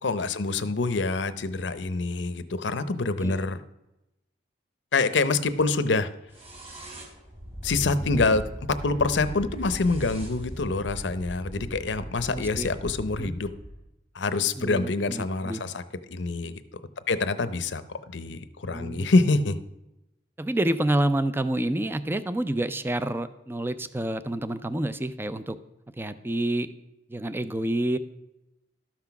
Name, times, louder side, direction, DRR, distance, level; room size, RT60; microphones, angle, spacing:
voice 1, 0.0-3.6 4.9-6.1 7.6-8.4 8.8-13.5 14.1-15.8 16.1-16.6 17.1-17.8 18.1-19.6, left 3 dB, 70° left, 13 dB, 0.7 m, -26 dB
sound 1, 6.3-13.8, equal, 30° right, 3.4 m, -38 dB
voice 2, 12.3-12.7 13.2-13.3 14.5-15.6 18.7-19.1 20.4-25.6 26.0-26.7 27.1-28.0, right 1 dB, 10° right, 13 dB, 0.4 m, -28 dB
12.5 x 6.0 x 5.9 m, 0.93 s
head